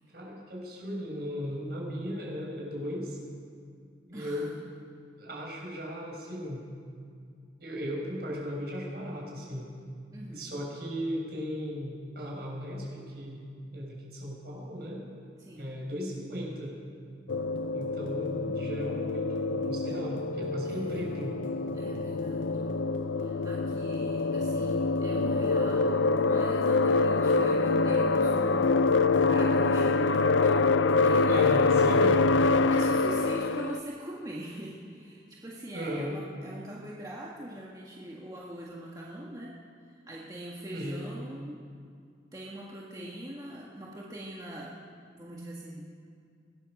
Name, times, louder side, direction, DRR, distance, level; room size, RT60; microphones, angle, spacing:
voice 1, 0.1-3.2 4.1-4.5 5.2-6.6 7.6-9.7 10.3-13.4 13.7-15.0 15.5-16.7 17.7-21.4 31.3-32.1 35.7-36.1 40.7-41.0, equal, 55° right, -2 dB, 6.0 m, -36 dB
voice 2, 4.1-4.6 10.1-10.5 15.4-15.7 20.6-21.3 21.7-22.8 23.2-30.7 31.0-41.6 42.3-44.8 45.1-45.8, right 1 dB, 20° right, -4 dB, 1.7 m, -43 dB
sound 1, 17.3-33.8, left 3 dB, 90° left, 0.6 m, -25 dB
22.0 x 18.0 x 6.6 m, 2.3 s
head